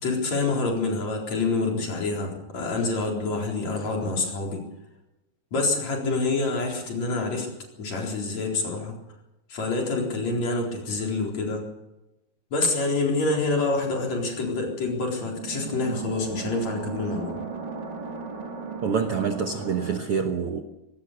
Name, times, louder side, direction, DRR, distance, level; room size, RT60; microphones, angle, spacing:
voice 1, 0.0-4.6 5.5-7.5 7.8-9.0 9.5-11.6 12.5-17.3, left 3 dB, 45° left, 0 dB, 5.2 m, -27 dB
sound 1, 13.5-20.0, right 5 dB, 30° right, 2.6 m, -37 dB
voice 2, 18.8-20.6, right 6 dB, 85° right, 5 dB, 1.2 m, -26 dB
23.0 x 19.0 x 6.8 m, 0.98 s
omnidirectional pair, 4.5 m